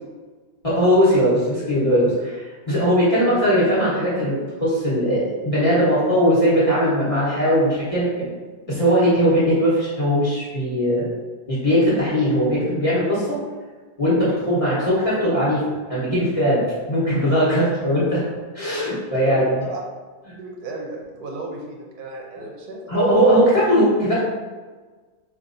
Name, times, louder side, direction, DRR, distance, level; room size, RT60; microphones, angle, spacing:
voice 1, 0.6-8.3 8.7-11.1 11.5-13.4 14.0-15.6 15.9-18.2 18.5-19.5 22.9-24.2, equal, 25° left, -9 dB, 0.9 m, -19 dB
voice 2, 19.3-19.8 20.4-23.5, right 2 dB, 75° right, 0 dB, 1.1 m, -34 dB
4.4 x 2.8 x 2.6 m, 1.4 s
omnidirectional pair, 1.7 m